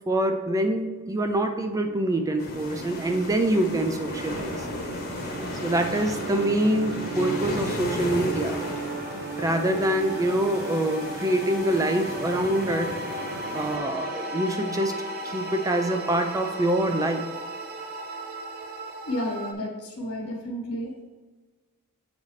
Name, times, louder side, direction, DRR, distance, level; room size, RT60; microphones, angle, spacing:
voice 1, 0.1-4.7 5.6-8.7 9.4-13.2 13.5-14.9 15.2-17.3, right 1 dB, 15° right, 5 dB, 0.4 m, -25 dB
sound 1, 1.2-19.5, right 2 dB, 45° right, 0.7 m, -36 dB
sound 2, 2.4-13.8, left 1 dB, 45° left, 1.1 m, -35 dB
voice 2, 19.0-21.0, left 1 dB, 75° left, 0 dB, 1.5 m, -31 dB
8.2 x 4.0 x 3.2 m, 1.4 s
head